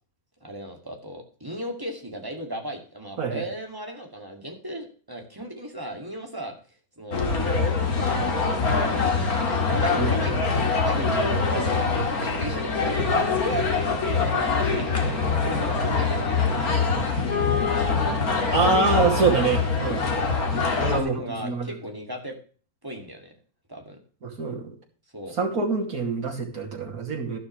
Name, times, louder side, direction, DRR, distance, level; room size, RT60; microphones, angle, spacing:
voice 1, 0.4-6.6 7.0-7.2 8.9-9.2 9.5-10.4 10.7-16.7 19.8-22.4 22.8-23.3 23.7-24.0 25.1-25.4, right 1 dB, 15° right, 2 dB, 2.3 m, -36 dB
sound 1, 7.1-21.0, left 4 dB, 90° left, 2.6 m, -24 dB
voice 2, 18.5-20.0 20.8-21.7 24.2-24.7 25.4-27.4, right 4 dB, 85° right, 0 dB, 2.9 m, -25 dB
12.5 x 12.0 x 3.2 m, 0.41 s
omnidirectional pair, 1.5 m